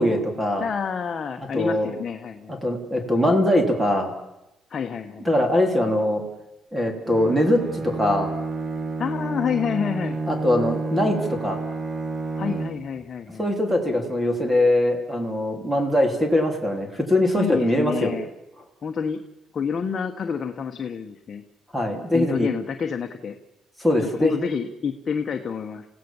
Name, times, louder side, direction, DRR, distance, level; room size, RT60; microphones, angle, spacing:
voice 1, 0.0-0.7 1.5-1.9 2.5-4.1 5.3-6.2 6.7-8.3 10.3-11.6 13.4-18.1 21.7-22.5 23.8-24.3, left 1 dB, 10° right, 5 dB, 3.5 m, -22 dB
voice 2, 0.6-2.5 4.7-5.3 9.0-10.2 12.4-13.5 17.4-18.3 18.8-19.2 19.5-21.4 21.9-23.4 24.0-25.9, left 6 dB, 40° left, 4 dB, 1.4 m, -28 dB
Bowed string instrument, 7.1-13.0, right 3 dB, 30° right, 1.8 m, -30 dB
29.5 x 16.5 x 7.3 m, 0.95 s
cardioid pair, 120°, 0 cm